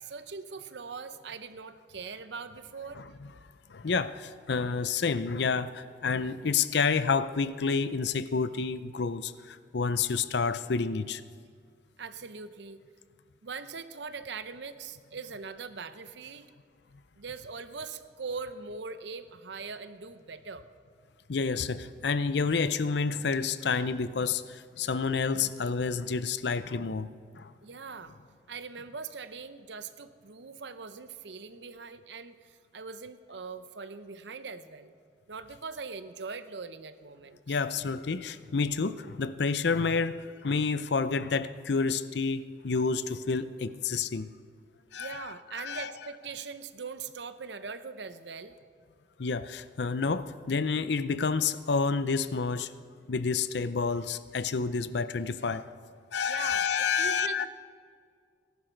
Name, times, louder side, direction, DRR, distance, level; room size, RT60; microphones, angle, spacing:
voice 1, 0.0-3.0 12.0-12.8 13.4-16.5 17.2-20.7 27.6-28.1 28.5-34.9 35.3-37.6 45.0-48.5 56.3-57.5, right 5 dB, 75° right, 0.7 m, -41 dB
voice 2, 3.7-11.2 21.3-27.1 27.3-27.5 37.5-44.3 44.9-45.2 45.6-45.9 49.2-52.7 53.1-55.7 56.1-57.5, left 5 dB, 70° left, 0.6 m, -29 dB
19.0 x 11.5 x 4.5 m
head